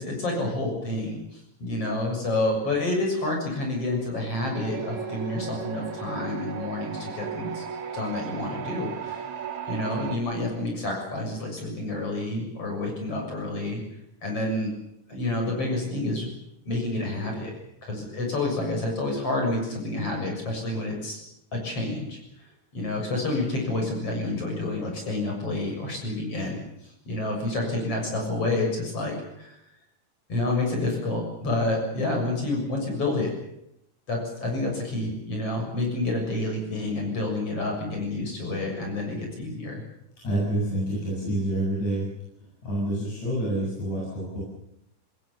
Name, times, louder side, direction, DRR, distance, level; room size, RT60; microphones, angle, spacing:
voice 1, 0.0-7.6 7.9-9.3 9.7-13.8 14.2-14.7 15.1-16.3 16.6-17.5 17.8-21.2 21.5-22.2 22.7-26.6 27.1-29.6 30.3-33.3 34.1-39.8, left 2 dB, 50° left, 1 dB, 7.9 m, -29 dB
sound 1, 4.5-10.2, right 7 dB, 50° right, 3.0 m, -35 dB
voice 2, 40.2-42.1 42.6-44.4, right 1 dB, 70° left, -5 dB, 9.1 m, -27 dB
27.0 x 20.5 x 7.1 m, 0.82 s
omnidirectional pair, 3.4 m